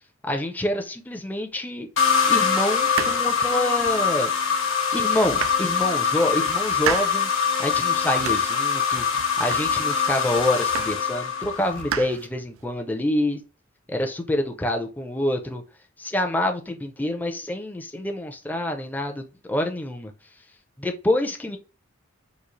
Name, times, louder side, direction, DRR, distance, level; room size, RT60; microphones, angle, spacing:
voice 1, 0.2-1.9 2.3-7.3 7.6-13.4 13.9-15.6 16.0-20.1 20.8-21.6, left 1 dB, 10° left, 0.4 m, -27 dB
sound 1, 2.0-11.9, left 6 dB, 70° left, 1.0 m, -23 dB
sound 2, 2.8-4.1 4.6-4.7 5.1-6.1 6.5-7.3 7.7-8.6 9.0-10.0 10.4-11.2 11.4-12.7, right 9 dB, 75° right, 0.3 m, -33 dB
3.8 x 2.3 x 3.0 m
head